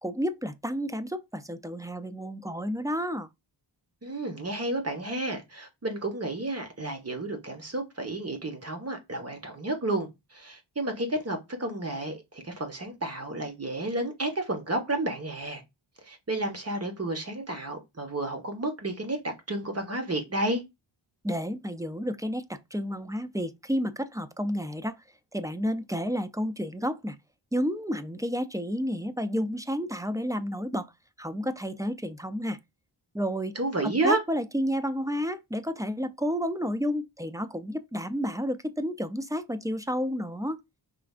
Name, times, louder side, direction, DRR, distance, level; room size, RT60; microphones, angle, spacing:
voice 1, 0.0-3.3 21.2-25.0 25.3-27.2 27.5-30.9 31.2-32.6 33.1-33.5 33.8-40.6, equal, 10° right, 0.3 m, -31 dB
voice 2, 4.0-15.6 16.0-20.6 33.5-34.2, right 2 dB, 30° right, 1.3 m, -31 dB
5.0 x 3.3 x 2.4 m
wide cardioid pair, 75°, 47 cm